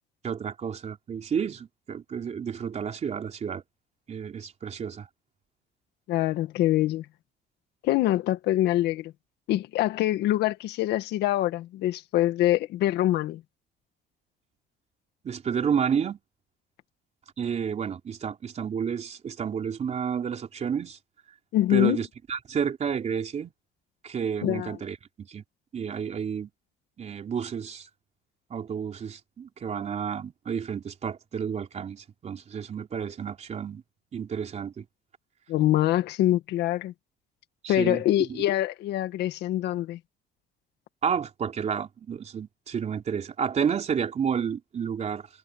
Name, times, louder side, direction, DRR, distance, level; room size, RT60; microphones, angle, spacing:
voice 1, 0.2-3.6 4.1-5.1 15.2-16.2 17.4-21.0 21.7-23.5 24.0-25.4 25.7-26.5 27.0-27.9 28.5-33.8 34.1-34.9 37.6-38.4 41.0-45.3, right 7 dB, 40° right, 3.6 m, -31 dB
voice 2, 6.1-7.1 7.8-9.1 9.5-13.4 21.5-22.0 24.4-24.7 35.5-36.9 37.7-40.0, left 14 dB, 80° left, 1.8 m, -24 dB
cardioid pair, 110°, 17 cm